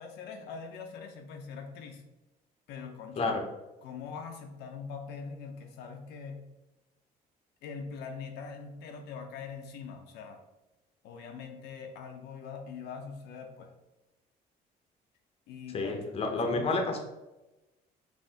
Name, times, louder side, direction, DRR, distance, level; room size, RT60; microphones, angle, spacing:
voice 1, 0.0-2.0 2.7-3.4 3.8-6.5 7.6-10.4 11.0-13.7 15.5-17.0, left 5 dB, 85° left, 3 dB, 0.6 m, -43 dB
voice 2, 15.7-17.0, left 3 dB, 35° left, 4 dB, 0.6 m, -29 dB
5.4 x 2.6 x 2.7 m, 1.0 s
cardioid pair, 110°, 17 cm